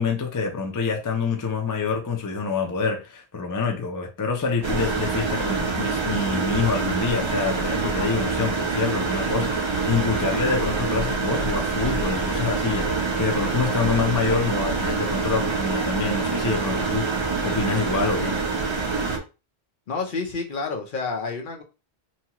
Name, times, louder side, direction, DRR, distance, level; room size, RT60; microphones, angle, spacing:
voice 1, 0.0-18.4, left 4 dB, 35° left, 0.3 m, -26 dB
sound 1, 4.6-19.2, right 4 dB, 40° right, 0.4 m, -26 dB
voice 2, 19.9-21.6, left 4 dB, 55° left, 0.8 m, -29 dB
2.8 x 2.3 x 2.9 m
omnidirectional pair, 1.1 m